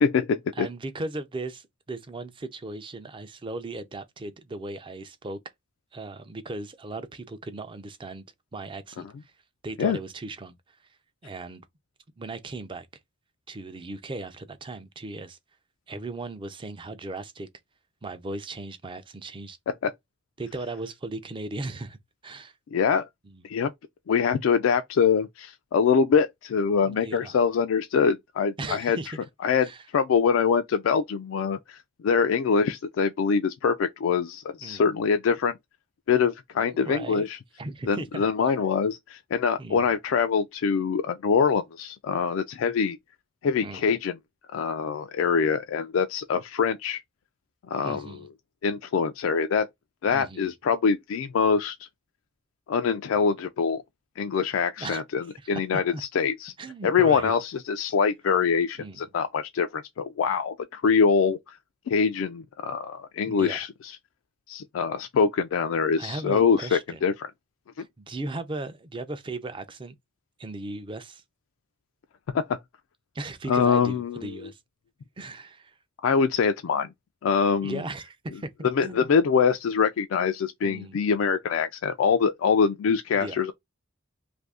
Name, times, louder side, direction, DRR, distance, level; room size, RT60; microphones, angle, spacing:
voice 1, 0.0-0.7 9.8-10.0 19.8-19.9 22.7-23.0 23.4-23.7 24.1-29.0 29.4-31.8 32.0-35.5 36.1-37.4 37.9-43.0 43.4-44.1 44.5-47.0 47.7-48.1 48.6-49.7 50.0-51.8 52.7-53.8 54.2-56.5 56.8-61.4 61.9-63.7 64.5-67.3 72.3-72.6 73.5-74.3 76.0-76.9 77.2-77.8 78.6-83.5, left 6 dB, 80° left, 0.3 m, -24 dB
voice 2, 0.5-5.4 5.9-8.2 8.5-9.3 9.6-10.6 11.2-11.6 12.2-12.9 13.5-15.4 15.9-17.5 18.0-19.6 20.4-22.0 22.2-22.5 23.2-23.4 26.8-27.3 28.6-29.3 29.6-29.8 34.6-34.9 36.5-37.3 37.6-38.3 39.6-39.8 43.6-44.0 47.8-48.3 50.1-50.5 54.8-55.0 55.4-55.5 55.9-56.0 56.6-57.3 58.8-59.1 63.3-63.6 66.0-67.1 67.8-69.9 70.4-71.2 73.1-74.6 75.2-75.7 77.6-79.1 80.6-81.0 83.1-83.4, right 2 dB, 25° right, 0.4 m, -37 dB
2.6 x 2.6 x 3.4 m
head